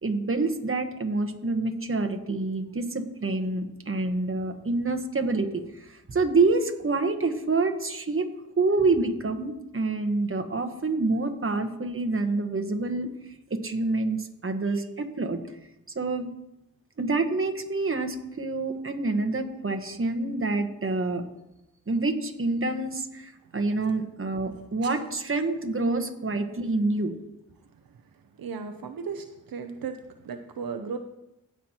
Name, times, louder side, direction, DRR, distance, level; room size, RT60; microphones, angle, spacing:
voice 1, 0.0-8.3 8.6-13.1 13.5-15.4 15.9-16.3 17.0-21.2 21.9-27.2, right 3 dB, 40° right, 6 dB, 1.3 m, -27 dB
voice 2, 28.4-30.0 30.2-31.0, right 5 dB, 85° right, 6 dB, 0.7 m, -35 dB
17.0 x 6.0 x 2.9 m, 0.86 s
cardioid pair, 55°, 34 cm